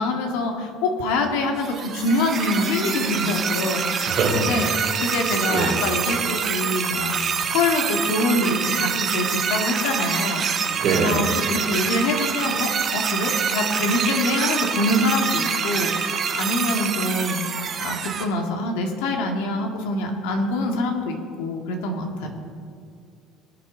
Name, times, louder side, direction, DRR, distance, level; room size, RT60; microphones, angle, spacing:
voice 1, 0.0-4.7 5.0-22.3, left 2 dB, 90° left, 2 dB, 2.0 m, -25 dB
sound 1, 1.6-18.2, right 6 dB, 40° right, 1.3 m, -26 dB
voice 2, 4.0-4.8 5.5-5.7 10.7-11.2 22.2-22.3, right 4 dB, 55° right, 1 dB, 2.6 m, -24 dB
20.5 x 8.3 x 3.9 m, 2.3 s
cardioid pair, 120°, 0 cm